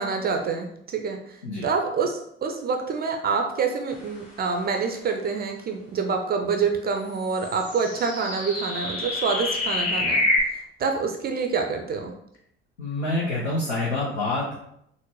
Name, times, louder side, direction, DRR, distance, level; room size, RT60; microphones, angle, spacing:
voice 1, 0.0-12.1, right 5 dB, 30° right, 4 dB, 0.4 m, -27 dB
sound 1, 7.2-10.4, left 2 dB, 50° left, 1.3 m, -27 dB
voice 2, 12.8-14.6, left 2 dB, 85° left, -5 dB, 0.7 m, -27 dB
3.9 x 2.0 x 3.1 m, 0.75 s
figure-of-eight pair, 55°, 33 cm